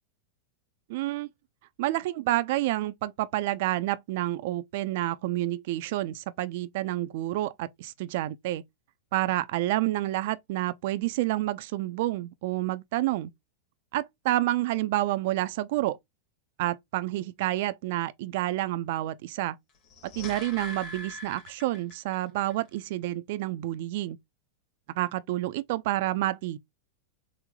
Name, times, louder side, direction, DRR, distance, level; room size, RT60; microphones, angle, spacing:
voice 1, 0.9-1.3 1.8-8.6 9.1-13.3 13.9-16.0 16.6-19.6 20.0-24.2 25.0-26.6, right 16 dB, 60° right, 0.3 m, -29 dB
sound 1, 19.7-22.2 22.5-22.6, left 1 dB, 40° left, 1.4 m, -42 dB
3.6 x 2.0 x 3.1 m
hypercardioid pair, 125°, 0 cm